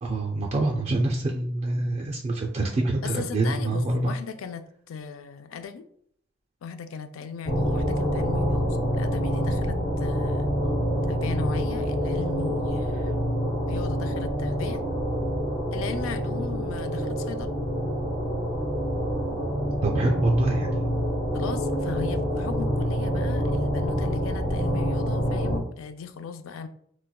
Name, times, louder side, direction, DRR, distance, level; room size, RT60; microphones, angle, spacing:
voice 1, 0.0-4.1 19.8-20.7, right 2 dB, 35° right, 0 dB, 0.3 m, -25 dB
voice 2, 3.0-5.8 6.6-8.7 8.9-10.5 11.1-13.1 13.7-14.8 15.7-17.5 21.3-26.7, left 6 dB, 85° left, 9 dB, 0.3 m, -37 dB
sound 1, 7.4-25.6, equal, 40° left, 1.1 m, -27 dB
4.0 x 2.2 x 2.2 m, 0.65 s
head